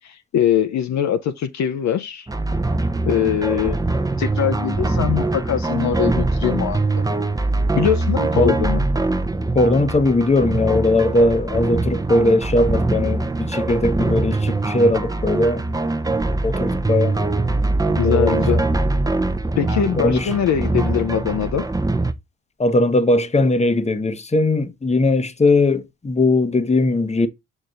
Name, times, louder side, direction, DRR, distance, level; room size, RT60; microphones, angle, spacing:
voice 1, 0.0-2.3 3.0-3.8 4.2-7.0 7.7-8.8 18.0-18.6 19.6-21.6, left 9 dB, 50° left, 0.7 m, -22 dB
sound 1, 2.3-22.1, right 2 dB, 10° right, 0.7 m, -22 dB
voice 2, 9.5-15.6 16.4-17.2 18.0-18.6 19.9-20.3 22.6-27.3, left 2 dB, 20° left, 0.9 m, -19 dB
6.4 x 6.3 x 2.5 m
hypercardioid pair, 40°, 37 cm